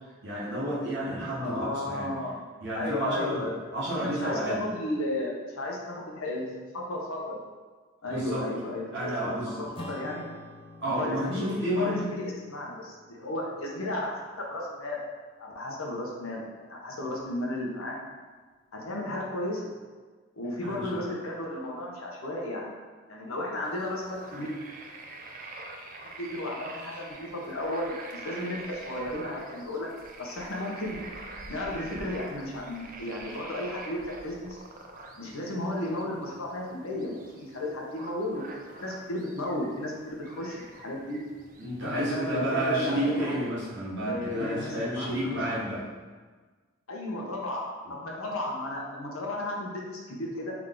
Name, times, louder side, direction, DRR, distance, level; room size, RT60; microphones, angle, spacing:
voice 1, 0.2-2.1 2.6-3.5 3.7-4.7 8.1-8.5 8.9-9.7 10.8-12.2 20.6-21.0 41.6-45.9, right 1 dB, 55° right, -7 dB, 1.3 m, -30 dB
voice 2, 1.4-3.5 3.9-6.6 6.9-7.4 8.0-10.3 10.9-15.1 15.4-18.0 18.7-19.7 20.4-22.7 23.1-24.5 26.2-29.9 30.2-31.0 31.5-34.6 35.2-38.5 38.8-41.2 41.8-43.3 44.1-45.4 46.9-50.5, left 1 dB, 80° left, -2 dB, 0.9 m, -34 dB
Acoustic guitar / Strum, 9.8-14.5, left 1 dB, 25° left, 0.5 m, -47 dB
sound 1, 23.6-43.5, right 2 dB, 40° right, 0.4 m, -46 dB
3.6 x 3.5 x 3.7 m, 1.4 s
head